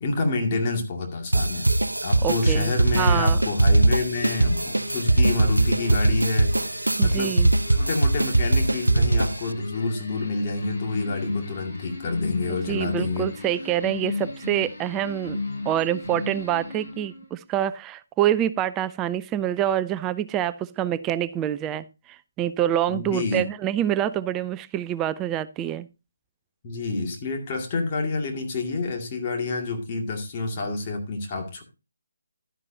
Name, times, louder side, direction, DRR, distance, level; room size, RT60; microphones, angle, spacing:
voice 1, 0.0-1.7 2.0-6.6 7.0-7.3 7.7-13.3 22.9-23.4 26.6-31.6, left 3 dB, 30° left, 1 dB, 2.2 m, -28 dB
sound 1, 1.3-9.5, right 2 dB, 80° right, 0.7 m, -21 dB
voice 2, 2.2-3.4 7.0-7.5 12.5-15.4 15.6-25.9, right 11 dB, 15° right, 15 dB, 0.4 m, -26 dB
sound 2, 4.1-17.3, left 3 dB, 50° left, 7.2 m, -36 dB
11.5 x 9.8 x 2.7 m, 0.28 s
figure-of-eight pair, 145°, 0 cm